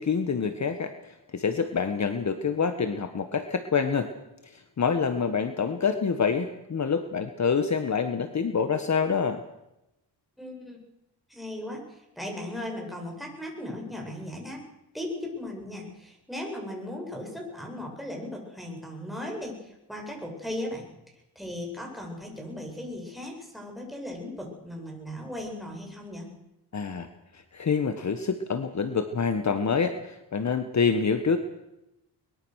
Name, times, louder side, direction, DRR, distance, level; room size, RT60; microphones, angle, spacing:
voice 1, 0.0-4.1 4.4-9.4 26.7-27.1 27.3-31.4, left 5 dB, 40° left, 8 dB, 1.5 m, -27 dB
voice 2, 10.4-10.8 11.3-14.6 14.9-20.9 21.3-26.3, left 1 dB, ahead, 0 dB, 8.0 m, -37 dB
23.0 x 22.0 x 6.5 m, 0.90 s
cardioid pair, 115°, 43 cm